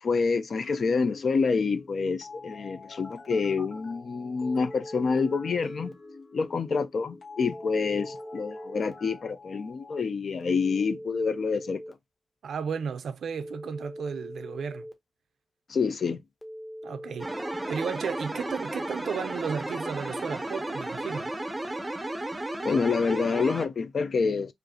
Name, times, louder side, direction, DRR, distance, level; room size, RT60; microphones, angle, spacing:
voice 1, 0.0-5.9 6.3-11.8 15.7-16.2 22.6-24.5, left 5 dB, 55° left, 0.5 m, -27 dB
sound 1, 0.6-10.0, left 3 dB, 80° left, 1.1 m, -48 dB
Telephone, 2.9-3.9 4.4-5.9 7.4-8.9 10.4-11.9 13.4-14.9 16.4-17.9, equal, 25° left, 1.0 m, -42 dB
voice 2, 12.4-14.8 16.8-17.3 17.7-21.3, right 6 dB, 80° right, 0.5 m, -34 dB
sound 2, 17.2-23.7, right 1 dB, 15° right, 0.6 m, -34 dB
5.1 x 2.6 x 2.7 m
wide cardioid pair, 140°, 0 cm